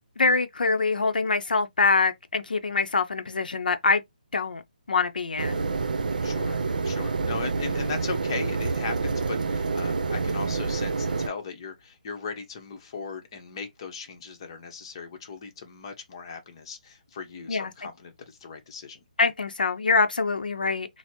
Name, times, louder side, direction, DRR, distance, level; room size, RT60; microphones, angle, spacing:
voice 1, 0.2-4.0 4.3-4.6 4.9-5.6 17.5-17.7 19.2-20.9, left 4 dB, 90° left, 0.6 m, -24 dB
sound 1, 5.4-11.3, right 4 dB, 70° right, 0.6 m, -28 dB
voice 2, 6.2-19.0, left 5 dB, 35° left, 0.8 m, -38 dB
4.2 x 2.0 x 2.8 m
hypercardioid pair, 165°, 5 cm